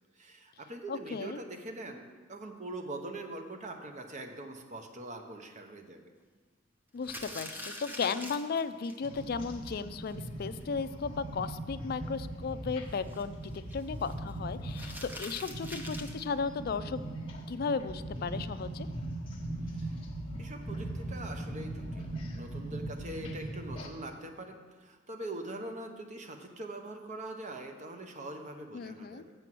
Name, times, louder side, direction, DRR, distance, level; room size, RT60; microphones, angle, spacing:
voice 1, 0.2-6.0 19.6-20.0 20.4-29.2, right 2 dB, 35° right, 5 dB, 0.8 m, -43 dB
voice 2, 0.9-1.4 6.9-17.1 17.5-18.9 28.7-29.2, left 5 dB, 50° left, 12 dB, 0.4 m, -35 dB
sound 1, 7.0-9.1 9.4-9.5 9.7-9.8 10.1-10.2 10.6-10.9 12.9-14.1 14.7-16.2, equal, 10° right, 0.7 m, -44 dB
sound 2, 9.0-23.9, right 1 dB, 25° left, 1.2 m, -40 dB
7.6 x 6.8 x 6.0 m, 1.4 s
head